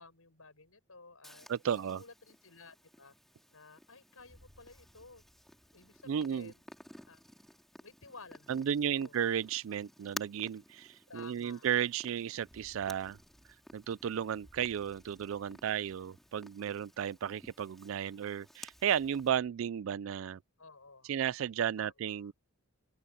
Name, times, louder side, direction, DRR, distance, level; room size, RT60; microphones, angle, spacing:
voice 1, 0.0-1.5 1.7-3.1 3.5-5.2 5.7-6.6 7.1-7.2 7.8-9.1 11.1-11.7 20.6-21.1 21.8-22.3, left 3 dB, 85° left, 6.7 m, -54 dB
Purr, 1.2-19.3, equal, ahead, 3.5 m, -54 dB
voice 2, 1.5-2.0 6.1-6.5 8.5-13.2 13.7-20.4 21.0-22.3, right 9 dB, 70° right, 0.3 m, -34 dB
sound 1, 3.4-3.5 4.2-9.3 10.3-10.4 12.1-19.5, equal, 30° right, 8.0 m, -66 dB
open air
head